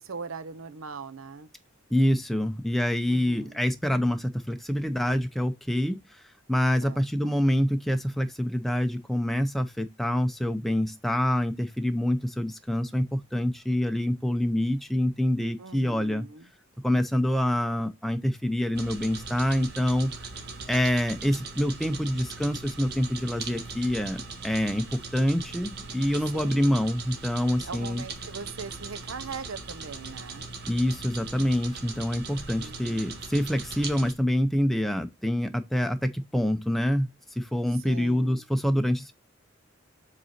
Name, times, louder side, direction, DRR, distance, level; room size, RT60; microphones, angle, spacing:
voice 1, 0.0-1.5 3.1-3.6 6.8-7.4 15.6-16.5 26.2-26.8 27.6-30.5 32.6-33.2 37.7-38.4, right 4 dB, 90° right, 0.8 m, -41 dB
voice 2, 1.9-6.0 6.5-16.3 16.8-20.1 20.7-24.9 25.1-28.0 30.7-37.1 37.4-39.1, equal, ahead, 0.5 m, -26 dB
sound 1, 18.7-34.1, right 4 dB, 55° right, 1.6 m, -40 dB
7.7 x 4.0 x 4.2 m
head